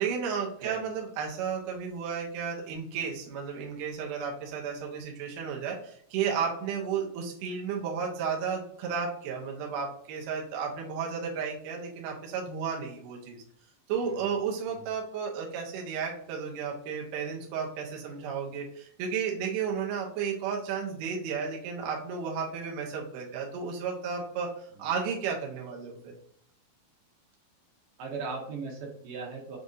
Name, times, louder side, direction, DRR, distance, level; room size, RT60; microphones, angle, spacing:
voice 1, 0.0-13.4 13.9-24.5 24.8-26.1, right 6 dB, 70° right, -1 dB, 2.2 m, -33 dB
voice 2, 28.0-29.6, right 4 dB, 90° right, -3 dB, 3.1 m, -38 dB
6.3 x 2.4 x 2.7 m, 0.66 s
omnidirectional pair, 4.4 m